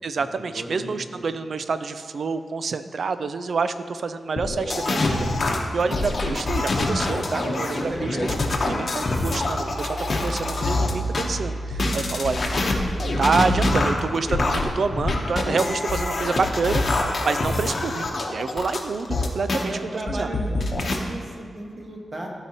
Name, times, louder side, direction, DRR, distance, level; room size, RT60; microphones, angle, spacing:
voice 1, 0.0-5.3 5.7-8.2 8.7-12.9 13.2-18.0 18.3-19.8 20.1-20.3, right 4 dB, 65° right, 11 dB, 0.4 m, -27 dB
voice 2, 0.5-1.2 5.8-6.0 7.3-8.4 8.7-8.8 19.5-20.7 20.9-22.3, right 1 dB, 35° right, -1 dB, 1.3 m, -34 dB
sound 1, 4.4-11.2 11.7-19.6 20.1-21.0, left 2 dB, 50° left, 0.9 m, -25 dB
sound 2, 8.4-8.5 8.8-13.8, right 1 dB, 5° right, 1.8 m, -34 dB
13.0 x 4.8 x 2.9 m, 2.2 s
wide cardioid pair, 100°, 0 cm